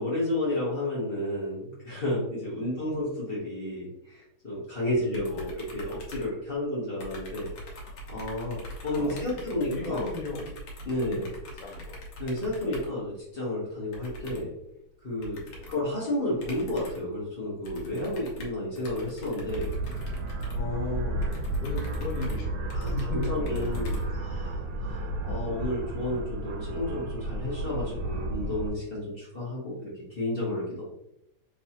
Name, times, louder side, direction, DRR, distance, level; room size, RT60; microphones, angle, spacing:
voice 1, 0.0-10.1 10.9-11.3 12.2-14.5 15.0-15.4 15.7-19.7 20.5-21.2 22.7-30.8, left 1 dB, 45° left, -6 dB, 0.8 m, -32 dB
voice 2, 4.8-5.4 8.9-10.6 10.8-11.9 15.4-15.7 20.5-24.1 24.9-25.2, left 2 dB, 80° left, -1 dB, 1.9 m, -39 dB
sound 1, 5.1-6.7 7.0-13.0 13.9-14.6 15.2-15.9 16.4-17.1 17.6-24.5, equal, 65° left, 1.3 m, -43 dB
sound 2, 19.5-28.7, right 1 dB, 80° right, 1.4 m, -32 dB
3.4 x 3.3 x 2.8 m, 0.83 s
omnidirectional pair, 2.4 m